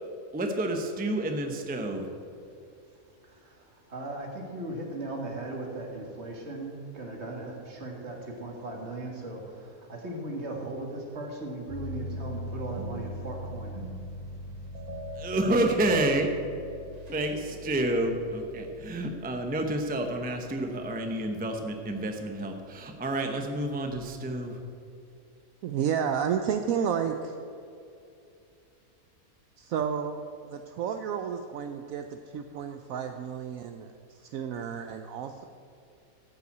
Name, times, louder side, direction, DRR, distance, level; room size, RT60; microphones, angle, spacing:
voice 1, 0.3-2.1 15.2-16.3 17.1-24.6, right 1 dB, 10° right, 4 dB, 0.7 m, -29 dB
voice 2, 2.6-15.2, right 2 dB, 45° right, 0 dB, 2.1 m, -38 dB
Piano, 11.7-23.9, left 1 dB, 25° left, 1.5 m, -43 dB
sound 1, 12.1-17.7, equal, 30° right, 1.4 m, -44 dB
voice 3, 25.6-27.4 29.6-35.4, right 8 dB, 70° right, 7 dB, 1.0 m, -31 dB
13.5 x 5.7 x 7.9 m, 2.6 s
omnidirectional pair, 1.6 m